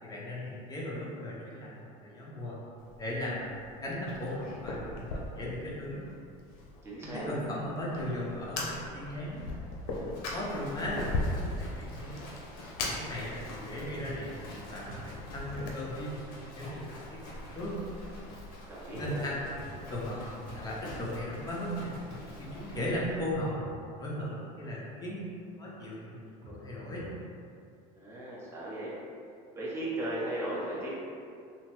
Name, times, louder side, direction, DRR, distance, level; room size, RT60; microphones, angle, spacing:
voice 1, 0.0-2.6 3.0-3.4 3.8-6.0 7.0-9.5 9.9-12.2 12.8-16.2 16.5-17.2 17.5-17.8 19.0-20.2 20.5-22.0 22.4-23.6 24.0-27.1, left 1 dB, 20° left, -6 dB, 0.7 m, -37 dB
Fire, 2.8-15.7, left 2 dB, 90° left, 0.5 m, -39 dB
voice 2, 6.8-7.3 18.7-19.2 28.0-28.9 29.5-31.0, right 1 dB, 15° right, -7 dB, 0.7 m, -36 dB
Livestock farm animals working animals, 7.9-23.5, left 1 dB, 55° left, 0.9 m, -46 dB
sound 1, 14.9-15.8 18.9-19.8 22.9-23.8 26.4-27.3, equal, 70° right, 0.6 m, -48 dB
2.9 x 2.1 x 3.0 m, 2.4 s
supercardioid pair, 120°, 18 cm